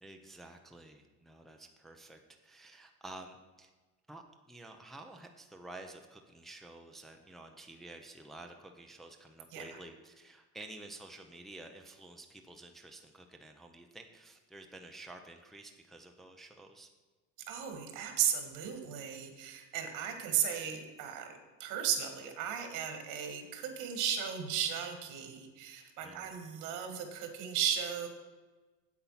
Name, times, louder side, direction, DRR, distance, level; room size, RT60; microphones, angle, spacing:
voice 1, 0.0-3.7 4.1-16.9 26.0-26.4, right 2 dB, ahead, 3 dB, 0.6 m, -51 dB
voice 2, 17.5-21.3 21.6-28.1, right 9 dB, 75° right, 6 dB, 1.8 m, -35 dB
8.4 x 8.3 x 5.7 m, 1.3 s
cardioid pair, 165°, 30 cm